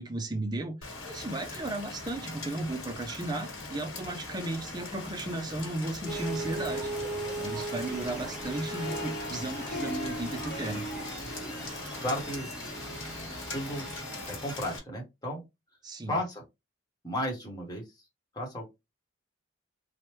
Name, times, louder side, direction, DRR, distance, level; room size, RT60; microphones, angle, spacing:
voice 1, 0.0-6.9 7.4-10.8 15.8-16.1, right 2 dB, 20° right, 0.4 m, -35 dB
Rain, 0.8-14.8, left 3 dB, 85° left, 1.2 m, -41 dB
sound 1, 6.1-14.5, right 2 dB, 5° right, 1.0 m, -39 dB
Harp, 8.1-13.3, equal, 70° left, 0.9 m, -41 dB
voice 2, 12.0-12.5 13.5-13.9 14.3-15.4 16.1-16.4 17.0-17.8 18.3-18.7, equal, 20° left, 0.9 m, -33 dB
3.2 x 2.0 x 3.0 m
head